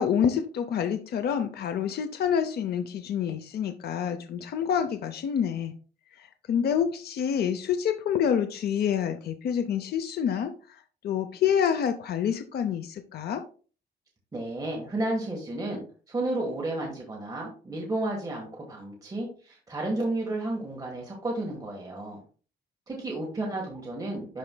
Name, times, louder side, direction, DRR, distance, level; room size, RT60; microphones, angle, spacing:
voice 1, 0.0-5.7 6.5-10.5 11.0-13.4, left 8 dB, 60° left, 8 dB, 0.6 m, -27 dB
voice 2, 14.3-15.8 16.1-22.2 22.9-24.4, right 2 dB, 20° right, -1 dB, 1.4 m, -32 dB
11.5 x 4.3 x 2.2 m, 0.38 s
wide cardioid pair, 165°, 19 cm